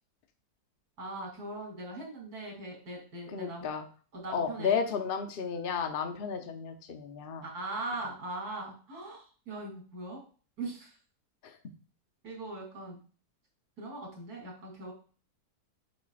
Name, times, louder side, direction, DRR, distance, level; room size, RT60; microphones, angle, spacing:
voice 1, 1.0-3.7 4.1-4.8 7.4-10.2 10.6-11.0 12.2-13.0 13.8-14.9, right 2 dB, 65° right, 0 dB, 3.2 m, -40 dB
voice 2, 3.3-3.8 4.3-7.5 11.4-11.6, left 6 dB, 45° left, 6 dB, 0.8 m, -33 dB
8.9 x 5.3 x 2.4 m, 0.38 s
omnidirectional pair, 1.7 m